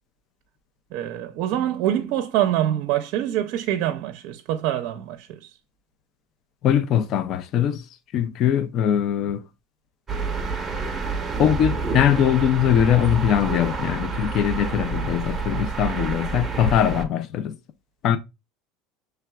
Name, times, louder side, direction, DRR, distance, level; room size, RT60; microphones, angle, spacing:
voice 1, 0.9-5.5, right 12 dB, 60° right, 0.5 m, -25 dB
voice 2, 6.6-7.9 8.1-9.5 11.4-17.6 18.0-18.2, left 9 dB, 45° left, 0.4 m, -21 dB
sound 1, 10.1-17.0, right 4 dB, 15° right, 0.8 m, -28 dB
5.7 x 3.3 x 2.2 m
cardioid pair, 145°, 0 cm